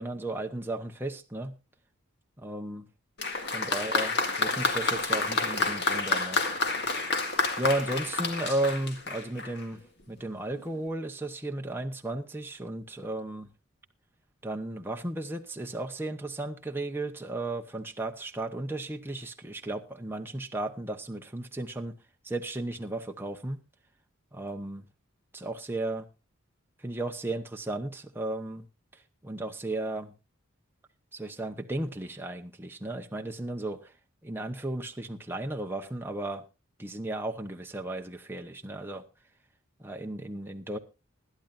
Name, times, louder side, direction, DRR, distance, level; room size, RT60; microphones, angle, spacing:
voice 1, 0.0-1.5 2.4-2.8 3.5-6.4 7.6-9.8 10.1-13.5 14.4-21.9 22.2-23.6 24.3-24.8 25.3-26.0 26.8-28.6 28.9-30.1 31.1-33.9 34.2-36.4 36.8-39.0 39.8-40.8, right 1 dB, 10° right, 0.9 m, -34 dB
Applause, 3.2-9.7 10.6-10.7, left 3 dB, 55° left, 2.0 m, -29 dB
20.5 x 12.0 x 2.6 m
head